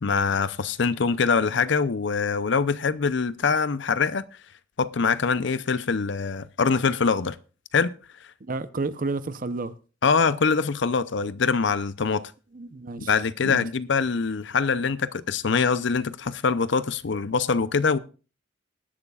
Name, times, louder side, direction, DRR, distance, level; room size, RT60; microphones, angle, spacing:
voice 1, 0.0-4.2 4.8-7.4 7.7-7.9 10.0-12.3 13.0-18.0, left 5 dB, 65° left, 0.6 m, -24 dB
voice 2, 8.4-9.7 12.5-13.1 13.4-13.7, right 3 dB, 45° right, 0.7 m, -31 dB
20.5 x 11.0 x 2.4 m
head